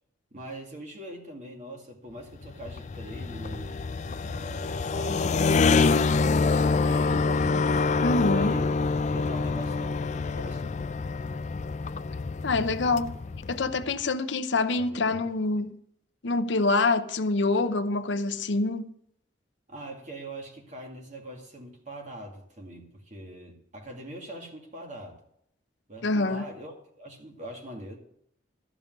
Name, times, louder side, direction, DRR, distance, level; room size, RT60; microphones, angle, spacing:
voice 1, 0.3-3.8 4.2-7.6 8.3-8.7 9.0-10.6 14.8-15.2 19.7-25.2 25.9-28.0, right 1 dB, 40° right, 2.3 m, -42 dB
sound 1, 2.3-13.9, left 4 dB, 35° left, 0.3 m, -26 dB
voice 2, 8.0-8.6 12.4-13.2 13.5-15.8 16.2-18.9 26.0-26.5, left 3 dB, 65° left, 0.7 m, -26 dB
13.0 x 5.3 x 9.2 m
head